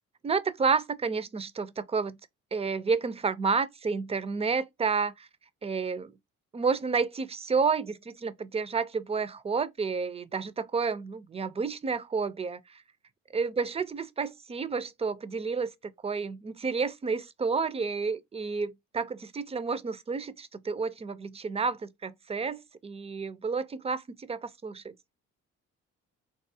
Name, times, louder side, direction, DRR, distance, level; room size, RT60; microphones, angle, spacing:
voice 1, 0.2-2.2 2.5-5.3 5.6-6.1 6.5-12.8 13.3-24.9, right 5 dB, 20° right, 0.4 m, -30 dB
3.5 x 2.6 x 2.6 m
cardioid pair, 90°, 30 cm